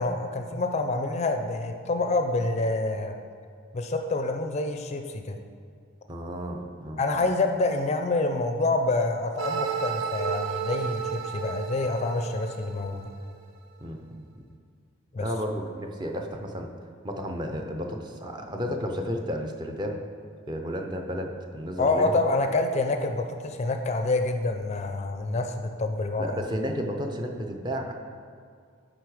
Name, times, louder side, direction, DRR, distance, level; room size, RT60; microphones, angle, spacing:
voice 1, 0.0-3.1 3.7-5.4 7.0-13.1 15.1-15.3 21.8-26.4, left 2 dB, 35° left, 5 dB, 0.4 m, -27 dB
voice 2, 6.1-7.3 13.8-14.5 15.2-16.7 17.0-20.0 20.5-22.1 26.2-27.9, equal, 20° right, 3 dB, 0.5 m, -32 dB
sound 1, 9.4-13.4, right 7 dB, 75° right, 0.6 m, -33 dB
9.4 x 3.9 x 4.9 m, 2.2 s
head